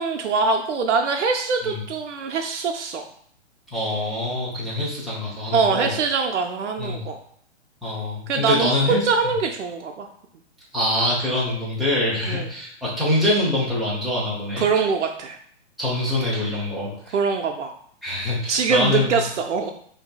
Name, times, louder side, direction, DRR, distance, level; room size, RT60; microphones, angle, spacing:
voice 1, 0.0-3.0 5.5-7.2 8.3-10.1 12.3-12.5 14.6-15.4 17.1-17.7 18.5-19.7, right 5 dB, 85° right, 3 dB, 0.5 m, -23 dB
voice 2, 3.7-5.9 6.8-7.0 7.8-9.0 10.7-14.6 15.8-17.1 18.0-19.1, left 1 dB, ahead, -8 dB, 0.5 m, -24 dB
5.1 x 2.7 x 2.2 m, 0.63 s
hypercardioid pair, 140°, 35 cm